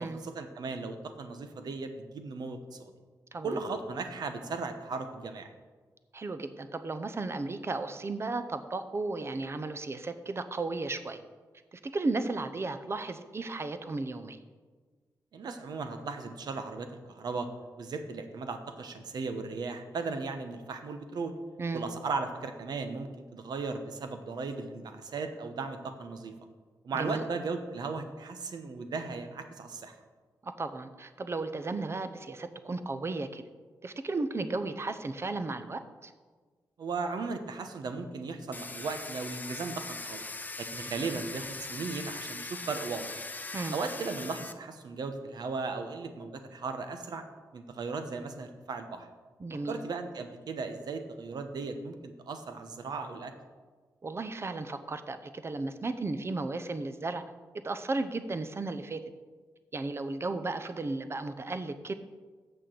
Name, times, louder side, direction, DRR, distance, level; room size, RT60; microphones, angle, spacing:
voice 1, 0.0-2.9 3.4-5.5 15.3-17.5 17.8-21.3 21.7-26.3 26.8-29.9 36.8-40.2 40.6-43.2 43.7-47.2 47.5-49.1 49.6-53.3, right 4 dB, 75° right, 7 dB, 1.0 m, -36 dB
voice 2, 6.1-11.2 11.7-14.4 21.6-21.9 26.9-27.3 30.4-33.4 33.8-36.1 43.5-43.8 49.4-49.8 54.0-57.2 57.6-59.0 59.7-61.9, right 3 dB, 35° right, 9 dB, 0.7 m, -34 dB
Domestic sounds home sounds, 38.5-44.5, left 3 dB, 25° left, 0.6 m, -40 dB
6.9 x 6.4 x 7.7 m, 1.4 s
cardioid pair, 85°, 7 cm